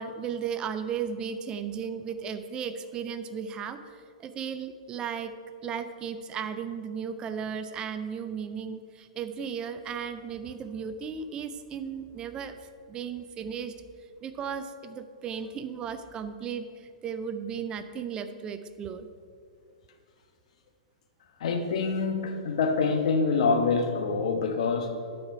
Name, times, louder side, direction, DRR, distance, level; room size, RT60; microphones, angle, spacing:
voice 1, 0.0-5.3 5.6-12.6 12.9-13.7 14.2-19.1, right 7 dB, 25° right, 11 dB, 0.4 m, -35 dB
voice 2, 21.4-25.0, left 4 dB, 65° left, 6 dB, 1.1 m, -26 dB
12.0 x 4.9 x 4.6 m, 2.2 s
hypercardioid pair, 135°, 4 cm